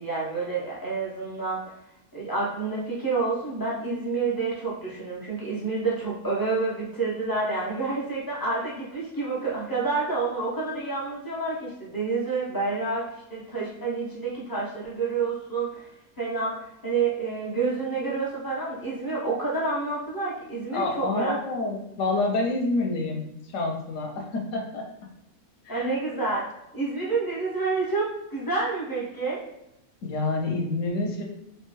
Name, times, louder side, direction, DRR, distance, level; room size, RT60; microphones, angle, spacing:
voice 1, 0.0-1.7 2.1-15.9 16.2-21.3 25.7-26.4 26.7-29.4, right 3 dB, 35° left, -6 dB, 0.3 m, -28 dB
voice 2, 20.7-24.8 25.6-26.0 30.0-31.2, left 2 dB, 70° left, 1 dB, 1.0 m, -28 dB
3.0 x 2.2 x 3.0 m, 0.86 s
omnidirectional pair, 1.5 m